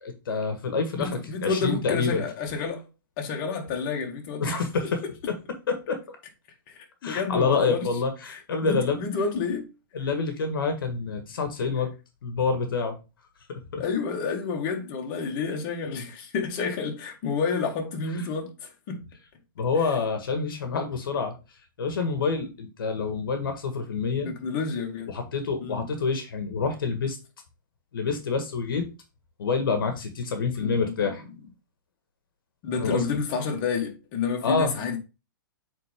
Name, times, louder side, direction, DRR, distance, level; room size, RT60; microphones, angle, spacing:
voice 1, 0.0-1.1 1.4-2.2 4.4-5.0 5.7-6.2 7.0-9.0 9.9-11.9 12.2-13.0 13.5-13.8 19.6-21.4 21.8-24.3 25.1-27.2 27.9-28.9 29.4-31.2 32.8-33.2 34.4-34.7, left 4 dB, 75° left, 1.6 m, -27 dB
voice 2, 0.9-2.9 3.2-4.9 6.7-7.9 8.3-9.7 13.8-19.1 19.8-19.9 24.2-25.1 25.6-25.9 30.6-31.2 32.6-35.0, left 5 dB, 40° left, 2.0 m, -30 dB
8.3 x 3.9 x 3.6 m
hypercardioid pair, 135°, 12 cm